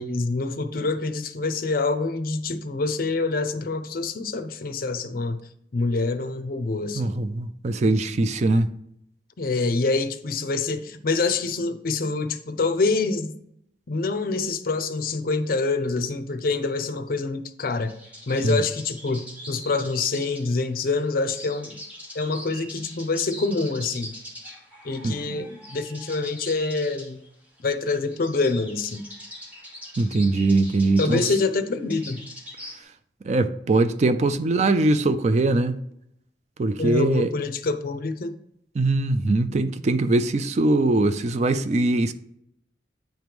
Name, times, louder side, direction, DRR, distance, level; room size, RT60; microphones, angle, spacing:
voice 1, 0.0-5.4 5.7-7.2 9.4-13.3 13.9-17.9 18.3-21.8 22.1-24.1 24.8-27.2 27.6-29.0 31.0-32.3 36.8-38.4, left 3 dB, 55° left, 0.5 m, -26 dB
voice 2, 7.0-8.7 18.4-18.6 25.0-25.4 30.0-31.2 33.2-35.8 36.6-37.3 38.8-42.1, right 2 dB, 40° right, 0.4 m, -22 dB
sound 1, 17.8-32.8, equal, 10° right, 1.2 m, -42 dB
9.0 x 3.1 x 5.1 m
head